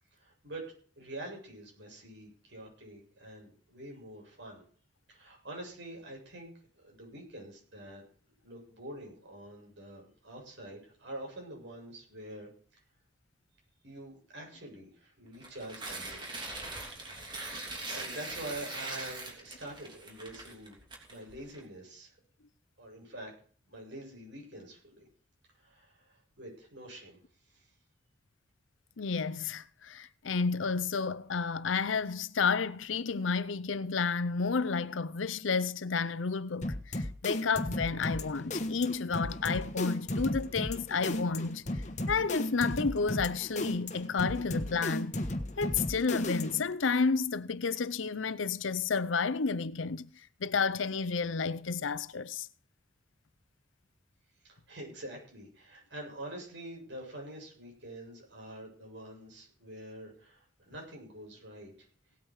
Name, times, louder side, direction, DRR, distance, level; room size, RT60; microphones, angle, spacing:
voice 1, 0.1-0.6 1.0-4.6 5.1-8.0 8.4-12.5 13.8-16.5 17.0-17.4 17.9-20.8 21.1-22.1 22.8-23.3 23.7-25.1 25.6-27.2 27.4-27.7 54.4-61.9, right 1 dB, 65° right, 7.8 m, -46 dB
Tearing, 15.3-21.6, right 2 dB, 25° right, 3.0 m, -41 dB
voice 2, 29.0-41.6 42.1-45.2 45.6-50.1 50.4-52.5, left 5 dB, 80° left, 0.6 m, -31 dB
sound 1, 36.6-46.7, left 1 dB, 35° left, 1.3 m, -35 dB
18.0 x 8.9 x 4.9 m
head